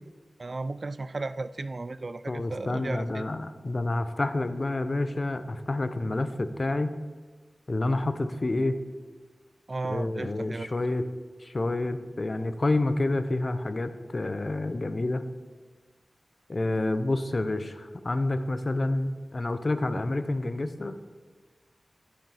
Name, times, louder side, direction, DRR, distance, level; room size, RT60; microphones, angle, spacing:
voice 1, 0.4-3.3 9.7-10.7, right 3 dB, 50° right, 15 dB, 0.3 m, -35 dB
voice 2, 2.3-7.0 7.7-8.8 9.8-11.1 11.4-15.2 16.5-21.0, left 2 dB, 40° left, 10 dB, 0.6 m, -28 dB
10.5 x 5.1 x 5.6 m, 1.4 s
wide cardioid pair, 75°, 0 cm